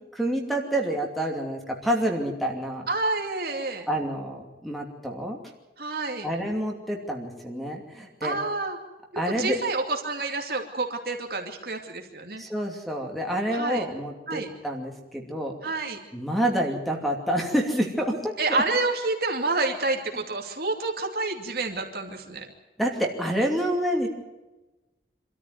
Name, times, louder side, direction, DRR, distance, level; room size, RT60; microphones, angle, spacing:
voice 1, 0.1-2.9 3.9-5.4 6.2-8.4 9.2-9.6 12.4-15.7 16.1-18.6 22.8-24.1, equal, ahead, 1 dB, 2.7 m, -28 dB
voice 2, 2.9-3.9 5.8-6.3 8.2-8.8 9.4-12.4 13.5-13.8 14.3-14.5 15.6-16.0 18.4-22.5, right 3 dB, 55° right, 3 dB, 2.6 m, -28 dB
25.5 x 13.5 x 9.5 m, 1.1 s
head